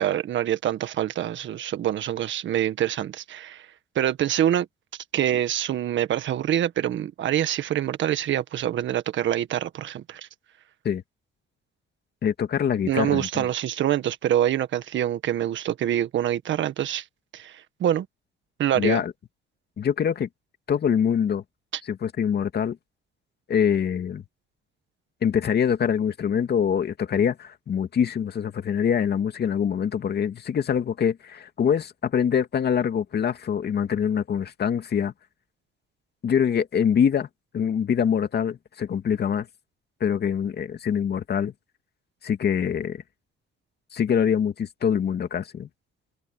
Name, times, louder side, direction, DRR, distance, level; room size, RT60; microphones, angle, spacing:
voice 1, 0.0-3.7 3.9-4.7 5.1-10.2 12.9-17.0 17.3-18.1 18.6-19.0, right 11 dB, 70° right, 1.6 m, -25 dB
voice 2, 12.2-13.4 18.7-19.1 19.8-20.3 20.7-21.4 21.8-22.8 23.5-24.2 25.2-35.1 36.2-37.3 37.5-39.5 40.0-41.5 42.2-43.0 43.9-45.7, left 8 dB, 55° left, 2.4 m, -24 dB
cardioid pair, 90°, 20 cm